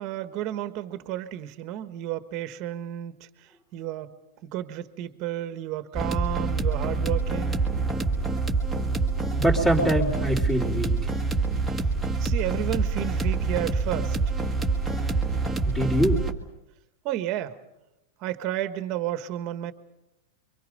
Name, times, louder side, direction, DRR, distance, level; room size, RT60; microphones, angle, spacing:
voice 1, 0.0-3.1 3.7-4.1 4.4-7.6 12.2-14.2 17.0-17.6 18.2-19.7, right 12 dB, 35° right, 1.4 m, -32 dB
sound 1, 5.9-16.3, right 3 dB, ahead, 1.6 m, -26 dB
voice 2, 9.4-10.9 15.6-16.2, equal, 15° left, 3.5 m, -24 dB
28.5 x 24.5 x 5.3 m
supercardioid pair, 165°, 0 cm